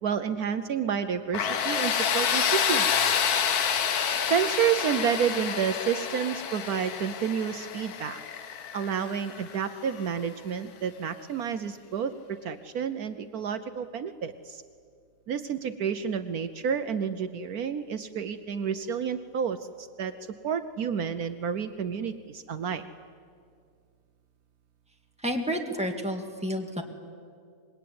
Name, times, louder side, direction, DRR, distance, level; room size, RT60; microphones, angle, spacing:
voice 1, 0.0-3.2 4.3-8.2 8.7-14.6 15.3-20.1 20.4-22.8, right 7 dB, 65° right, 10 dB, 1.2 m, -30 dB
Tools, 1.3-10.1, left 7 dB, 70° left, 1.5 m, -28 dB
voice 2, 25.2-26.8, equal, 5° right, 2 dB, 2.1 m, -30 dB
25.5 x 21.5 x 9.4 m, 2.3 s
omnidirectional pair, 1.7 m